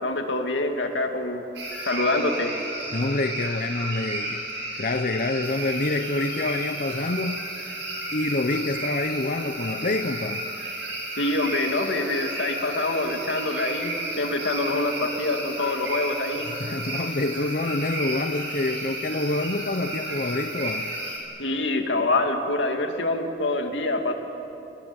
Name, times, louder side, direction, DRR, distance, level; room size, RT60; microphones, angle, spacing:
voice 1, 0.0-1.4 1.9-2.5 11.2-16.5 21.4-24.1, left 2 dB, 90° left, 4 dB, 2.5 m, -25 dB
sound 1, 1.5-21.2, right 1 dB, 80° right, 7.0 m, -33 dB
voice 2, 2.9-7.4 8.1-10.5 16.4-20.9, left 2 dB, 50° left, 7 dB, 0.8 m, -27 dB
28.0 x 20.5 x 9.0 m, 2.9 s
head